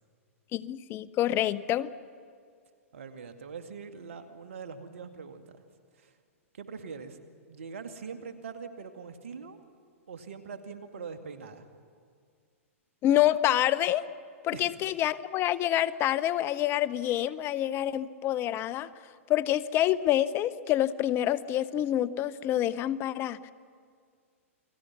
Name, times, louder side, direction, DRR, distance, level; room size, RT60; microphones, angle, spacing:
voice 1, 0.5-1.9 13.0-14.0 14.4-18.9 19.3-23.5, left 12 dB, 30° left, 17 dB, 0.9 m, -27 dB
voice 2, 2.9-5.6 6.0-6.1 6.5-7.2 7.5-9.6 10.1-11.7 14.5-14.8, right 5 dB, 65° right, 7 dB, 2.3 m, -43 dB
29.5 x 21.0 x 6.1 m, 2.2 s
figure-of-eight pair, 110°, 8 cm